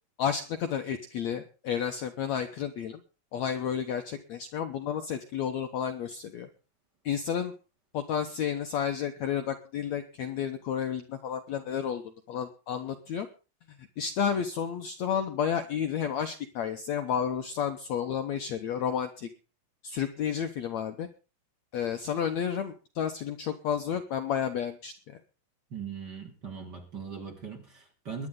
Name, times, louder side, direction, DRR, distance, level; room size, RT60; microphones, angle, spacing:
voice 1, 0.2-3.0 3.3-6.5 7.0-7.5 7.9-13.3 14.0-19.3 19.8-21.1 21.7-25.2, left 8 dB, 65° left, 7 dB, 1.8 m, -31 dB
voice 2, 25.7-28.3, right 6 dB, 30° right, 3 dB, 2.7 m, -40 dB
22.0 x 10.0 x 3.7 m, 0.33 s
omnidirectional pair, 4.2 m